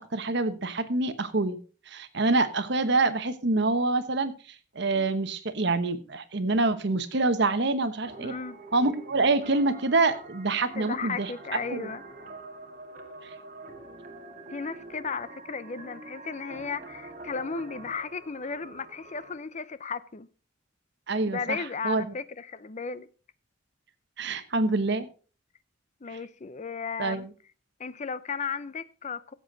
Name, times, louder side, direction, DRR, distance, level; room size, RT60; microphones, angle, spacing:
voice 1, 0.0-1.6 1.9-4.3 4.7-8.3 8.7-11.3 11.7-11.8 21.1-21.6 21.8-22.1 24.2-25.1 27.0-27.3, right 3 dB, 60° right, 1.1 m, -26 dB
sound 1, 8.0-19.3, right 2 dB, 45° right, 1.9 m, -45 dB
voice 2, 8.2-8.6 10.7-12.0 14.5-20.3 21.3-23.1 26.0-27.3 27.8-29.3, left 5 dB, 40° left, 0.6 m, -35 dB
16.0 x 7.8 x 3.9 m
head